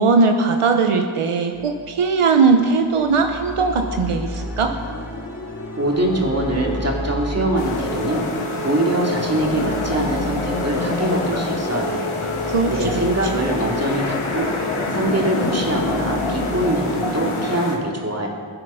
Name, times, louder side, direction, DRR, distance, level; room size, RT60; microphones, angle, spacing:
voice 1, 0.0-4.7 12.5-12.9, right 4 dB, 85° right, 5 dB, 1.0 m, -19 dB
sound 1, 1.5-17.5, left 1 dB, 5° right, 3.5 m, -35 dB
sound 2, 4.3-15.2, left 1 dB, 30° left, 0.8 m, -33 dB
voice 2, 5.8-8.3 8.6-12.1 12.7-18.3, right 1 dB, 30° right, -1 dB, 2.7 m, -23 dB
sound 3, 7.6-17.8, left 3 dB, 75° left, 2.2 m, -26 dB
20.5 x 7.7 x 5.7 m, 2.3 s
wide cardioid pair, 70°, 50 cm